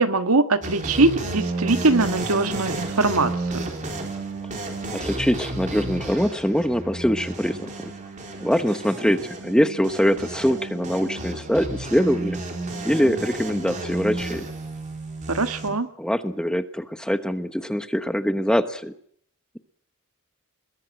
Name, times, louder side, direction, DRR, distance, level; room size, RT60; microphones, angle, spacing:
voice 1, 0.0-3.8 15.3-15.9, right 3 dB, 80° right, 9 dB, 1.6 m, -22 dB
sound 1, 0.6-15.7, right 2 dB, 35° right, 3.6 m, -32 dB
voice 2, 4.9-7.9 8.4-12.4 12.8-14.5 16.0-18.9, equal, 5° left, 10 dB, 1.0 m, -23 dB
22.0 x 20.0 x 7.6 m, 0.65 s
head